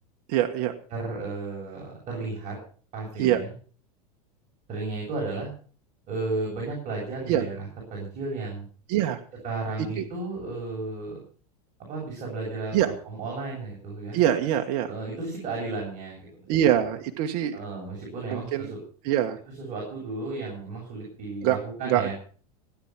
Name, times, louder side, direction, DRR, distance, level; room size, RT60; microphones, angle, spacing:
voice 1, 0.3-0.7 3.2-3.4 7.3-7.4 8.9-9.2 10.0-10.1 12.7-12.9 14.1-14.9 16.5-17.6 18.3-18.7 19.0-19.4 21.4-21.6 21.9-22.1, right 11 dB, 55° right, 5 dB, 1.4 m, -23 dB
voice 2, 0.9-2.6 2.9-3.5 4.7-5.5 6.1-8.7 9.4-11.1 11.8-14.2 14.8-16.8 17.5-18.8 19.5-22.1, right 3 dB, 40° right, -2 dB, 7.8 m, -34 dB
17.5 x 10.0 x 5.9 m, 0.43 s
supercardioid pair, 125°, 20 cm